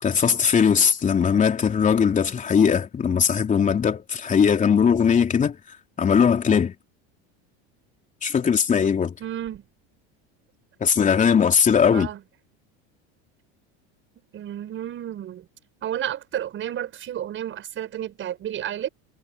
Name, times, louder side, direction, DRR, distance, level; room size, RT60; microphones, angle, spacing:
voice 1, 0.0-5.6 6.0-6.7 8.2-9.2 10.8-12.1, left 7 dB, 25° left, 3.4 m, -19 dB
voice 2, 9.2-9.6 11.9-12.2 14.3-15.4 15.8-18.9, right 11 dB, 40° right, 6.0 m, -31 dB
supercardioid pair, 135°, 32 cm